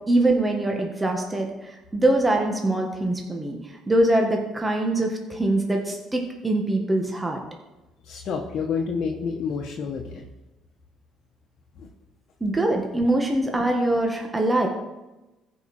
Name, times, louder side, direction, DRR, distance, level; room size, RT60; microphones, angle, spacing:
voice 1, 0.1-3.6 3.9-7.4 12.4-14.7, right 1 dB, 15° right, 2 dB, 1.6 m, -23 dB
voice 2, 8.0-10.2 11.8-11.9, left 5 dB, 60° left, 1 dB, 1.2 m, -29 dB
15.5 x 5.4 x 4.4 m, 1.0 s
supercardioid pair, 70°, 0 cm